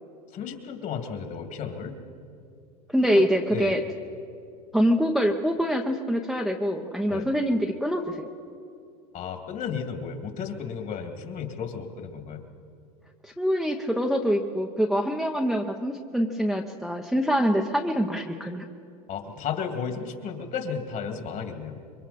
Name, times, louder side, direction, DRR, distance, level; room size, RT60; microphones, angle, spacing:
voice 1, 0.3-1.9 3.1-3.8 7.1-7.3 9.1-12.4 19.1-21.8, left 6 dB, 40° left, 4 dB, 2.6 m, -34 dB
voice 2, 2.9-3.8 4.7-8.3 13.4-18.6, equal, ahead, 2 dB, 1.0 m, -25 dB
26.5 x 23.0 x 4.3 m, 2.5 s
hypercardioid pair, 105°, 20 cm